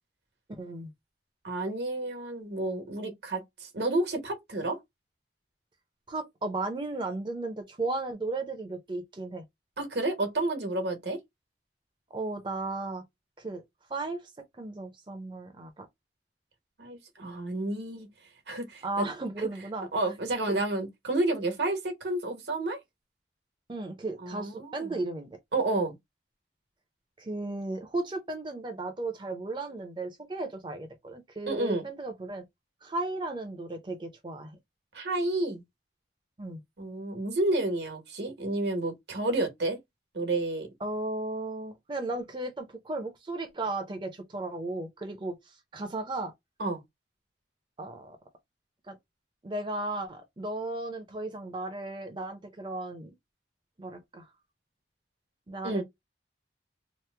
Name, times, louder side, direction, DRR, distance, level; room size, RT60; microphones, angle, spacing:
voice 1, 0.6-0.9 6.1-9.4 12.1-13.0 13.4-13.6 13.9-15.9 18.8-19.9 20.5-20.6 23.7-25.3 27.2-32.4 32.8-34.6 36.4-36.6 40.8-46.3 47.8-48.2 48.9-49.0 49.4-53.1 53.8-54.3 55.5-55.8, right 2 dB, 25° right, 0.5 m, -35 dB
voice 2, 1.4-4.8 9.8-11.2 16.8-18.1 18.5-19.0 19.9-22.8 24.2-25.0 25.5-26.0 31.5-31.9 34.9-35.6 36.8-39.8 40.1-40.7 46.6-46.8 55.6-55.8, right 2 dB, 75° right, 1.1 m, -30 dB
2.9 x 2.0 x 3.2 m
head